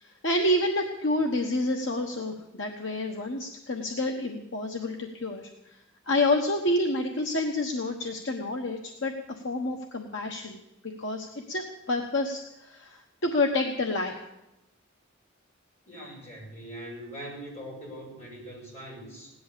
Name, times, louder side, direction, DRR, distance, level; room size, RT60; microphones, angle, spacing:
voice 1, 0.0-5.5 6.1-14.2, left 1 dB, 60° left, 2 dB, 1.3 m, -29 dB
voice 2, 15.9-19.3, right 1 dB, 35° left, -4 dB, 7.5 m, -42 dB
17.0 x 11.0 x 6.9 m, 0.91 s
head